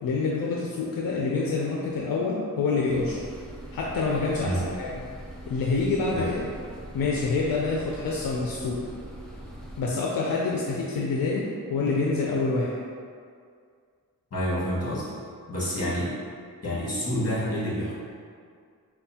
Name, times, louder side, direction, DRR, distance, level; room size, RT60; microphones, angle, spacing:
voice 1, 0.0-3.3 3.7-4.9 5.5-6.4 6.9-8.9 9.8-12.8, left 3 dB, 85° left, -3 dB, 0.5 m, -27 dB
sound 1, 2.9-9.8, right 1 dB, ahead, 0.5 m, -42 dB
voice 2, 14.3-15.1 15.5-16.1 16.6-17.9, equal, 45° left, -8 dB, 1.5 m, -28 dB
4.4 x 2.3 x 2.8 m, 2.2 s
wide cardioid pair, 75°, 34 cm